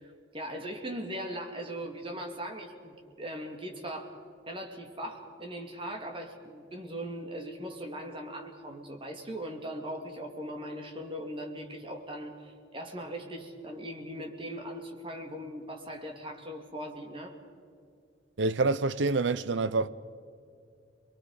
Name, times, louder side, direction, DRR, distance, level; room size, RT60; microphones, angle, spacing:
voice 1, 0.0-17.3, equal, 30° right, 2.5 m, -40 dB
voice 2, 18.4-19.9, right 3 dB, 80° right, 0.7 m, -27 dB
28.5 x 22.5 x 5.0 m
head